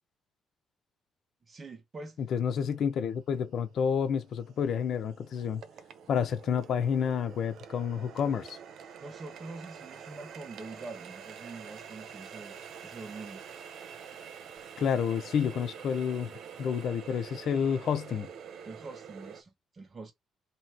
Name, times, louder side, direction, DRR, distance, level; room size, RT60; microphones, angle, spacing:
voice 1, 1.5-2.2 9.0-12.6 12.8-13.4 18.6-20.1, right 3 dB, 35° right, 1.3 m, -45 dB
voice 2, 2.3-5.6 6.1-8.6 14.8-16.3 16.6-18.3, left 7 dB, 65° left, 0.9 m, -29 dB
Water tap faucet, 2.9-3.0 3.6-19.4, right 7 dB, 70° right, 0.8 m, -47 dB
3.2 x 3.1 x 4.3 m
cardioid pair, 90°, 0 cm